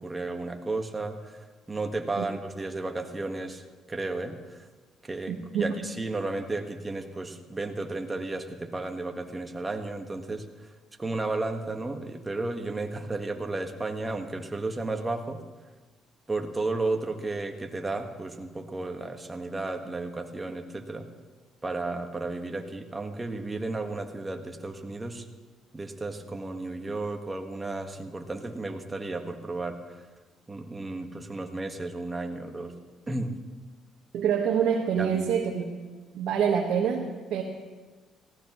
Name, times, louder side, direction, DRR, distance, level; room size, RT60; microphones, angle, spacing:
voice 1, 0.0-1.4 1.7-3.6 3.9-4.7 5.0-10.4 11.0-15.4 16.3-21.1 21.6-25.3 25.7-30.1 30.5-32.7 33.1-33.3 35.0-35.2, right 2 dB, 20° right, 5 dB, 1.5 m, -33 dB
voice 2, 5.3-5.7 34.1-35.6 36.1-37.4, right 7 dB, 70° right, 0 dB, 1.3 m, -26 dB
18.0 x 16.0 x 3.1 m, 1.3 s
cardioid pair, 85°, 0 cm